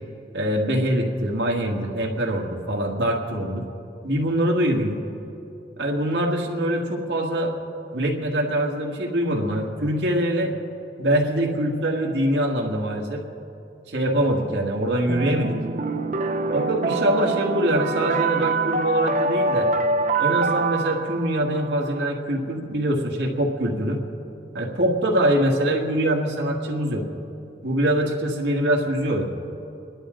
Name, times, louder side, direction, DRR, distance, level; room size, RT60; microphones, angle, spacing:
voice 1, 0.3-3.6 4.0-5.0 5.8-7.5 7.9-10.5 11.0-13.2 13.9-15.6 16.5-19.7 20.2-24.0 24.5-27.1 27.6-29.2, right 1 dB, 85° right, 0 dB, 1.8 m, -23 dB
sound 1, 15.1-22.1, right 3 dB, 45° right, 0.5 m, -25 dB
27.0 x 11.5 x 3.8 m, 2.9 s
head